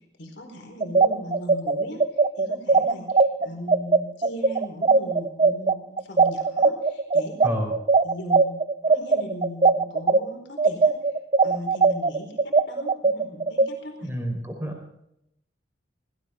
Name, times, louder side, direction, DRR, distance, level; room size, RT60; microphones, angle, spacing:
voice 1, 0.2-7.5 8.0-8.6 8.9-11.0 11.4-14.1, left 1 dB, 65° left, 2 dB, 4.5 m, -38 dB
sound 1, 0.8-10.2 10.6-13.7, right 4 dB, 30° right, 0.6 m, -19 dB
voice 2, 7.4-7.8 14.0-14.8, equal, 10° right, 2 dB, 4.6 m, -29 dB
17.0 x 17.0 x 3.8 m, 0.77 s
head